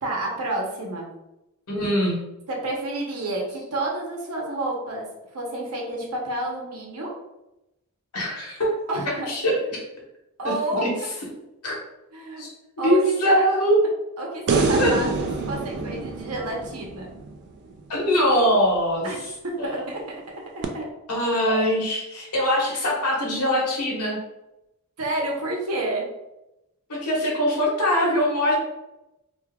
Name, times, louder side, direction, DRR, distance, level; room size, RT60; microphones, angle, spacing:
voice 1, 0.0-1.1 2.5-5.1 5.3-7.1 8.9-9.3 10.4-11.1 12.1-12.4 12.8-13.4 14.2-17.1 19.0-19.2 19.4-20.0 20.5-20.9 25.0-26.0, right 2 dB, 90° right, -1 dB, 0.9 m, -29 dB
voice 2, 1.7-2.2 8.1-8.7 9.3-9.5 10.4-10.5 10.8-10.9 11.6-11.8 12.4-12.5 12.8-13.8 14.8-14.9 17.9-19.1 19.6-19.9 21.1-24.2 26.9-28.6, equal, 85° left, -3 dB, 1.2 m, -22 dB
sound 1, 14.5-17.8 20.6-20.7, right 4 dB, 55° right, 0.4 m, -26 dB
2.8 x 2.3 x 3.4 m, 0.91 s
head